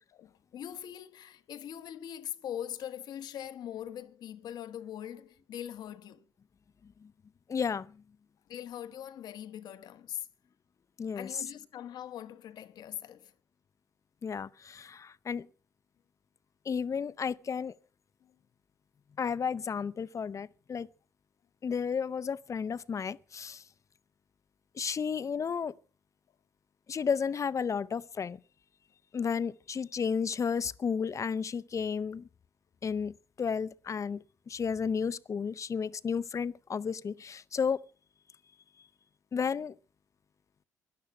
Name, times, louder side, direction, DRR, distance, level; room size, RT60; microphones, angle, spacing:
voice 1, 0.1-6.3 8.5-10.3 11.1-13.3 18.2-18.3, left 10 dB, 60° left, 1.2 m, -42 dB
voice 2, 7.5-8.0 11.0-11.3 14.2-15.5 16.7-17.7 19.2-20.9 21.6-23.6 24.7-25.7 26.9-28.4 29.1-32.3 32.8-37.8 39.3-39.7, left 6 dB, 40° left, 0.8 m, -33 dB
18.0 x 11.5 x 5.9 m
hypercardioid pair, 45°, 8 cm